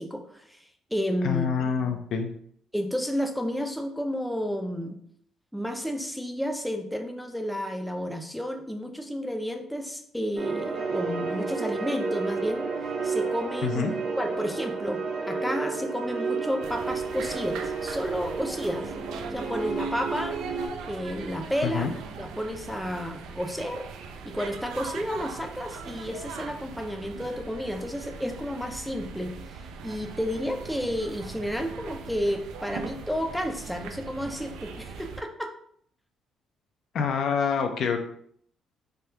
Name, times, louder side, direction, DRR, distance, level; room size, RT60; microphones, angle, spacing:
voice 1, 0.0-1.5 2.7-5.0 5.5-12.6 13.0-13.9 14.2-15.0 15.3-18.9 19.3-20.4 20.8-21.9 22.2-23.8 24.3-29.3 29.8-35.5, equal, ahead, 4 dB, 0.4 m, -31 dB
voice 2, 1.2-2.3 13.6-13.9 21.6-21.9 36.9-38.0, left 6 dB, 65° left, 5 dB, 0.4 m, -26 dB
sound 1, 10.4-20.7, right 4 dB, 60° right, 0.7 m, -31 dB
sound 2, 16.6-35.2, right 5 dB, 85° right, 0.3 m, -41 dB
3.4 x 2.3 x 2.8 m, 0.64 s
cardioid pair, 105°, 0 cm